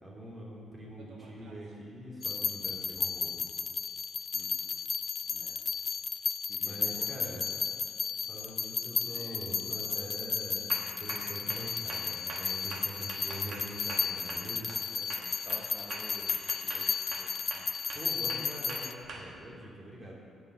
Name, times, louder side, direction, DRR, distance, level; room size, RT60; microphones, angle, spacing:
voice 1, 0.0-3.3 6.6-7.5 8.3-14.7 17.9-20.2, right 1 dB, 25° right, -4 dB, 3.3 m, -44 dB
sound 1, 1.0-1.7 5.9-6.0 7.5-7.8 8.3-8.6 9.1-9.4 9.9-10.1 10.7-14.8 15.1-19.2, right 3 dB, 65° right, 1.6 m, -44 dB
sound 2, 2.2-18.9, left 6 dB, 45° left, 0.4 m, -34 dB
voice 2, 4.3-4.8 5.3-5.6 6.5-7.6 14.9-17.7, equal, 10° left, -4 dB, 1.4 m, -51 dB
10.0 x 7.9 x 6.3 m, 2.4 s
cardioid pair, 90°, 0 cm